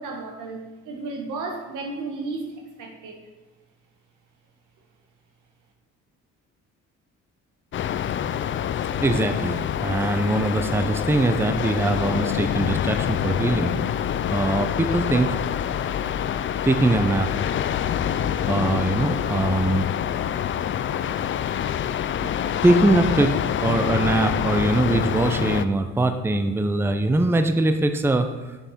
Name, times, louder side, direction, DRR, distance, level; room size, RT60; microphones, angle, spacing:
voice 1, 0.0-3.2, right 3 dB, 85° right, 3 dB, 1.5 m, -33 dB
sound 1, 7.7-25.7, left 9 dB, 40° left, 0.4 m, -26 dB
voice 2, 9.0-13.7 14.3-15.4 16.6-17.3 18.5-19.9 22.2-22.3 22.6-23.4 23.6-28.3, right 2 dB, 10° right, 8 dB, 0.6 m, -22 dB
7.3 x 6.4 x 4.3 m, 1.2 s
cardioid pair, 90°, 30 cm